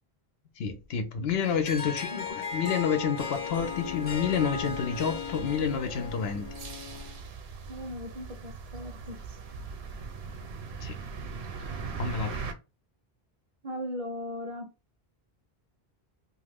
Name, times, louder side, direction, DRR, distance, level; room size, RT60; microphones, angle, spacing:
voice 1, 0.6-6.5 10.8-10.9 12.0-12.3, left 6 dB, 75° left, 0.8 m, -29 dB
Harp, 1.4-7.2, left 5 dB, 40° left, 0.6 m, -37 dB
sound 1, 3.5-12.5, right 5 dB, 80° right, 0.8 m, -41 dB
voice 2, 7.7-9.2 13.6-14.7, left 1 dB, 45° right, 0.5 m, -38 dB
2.4 x 2.3 x 3.3 m
omnidirectional pair, 1.1 m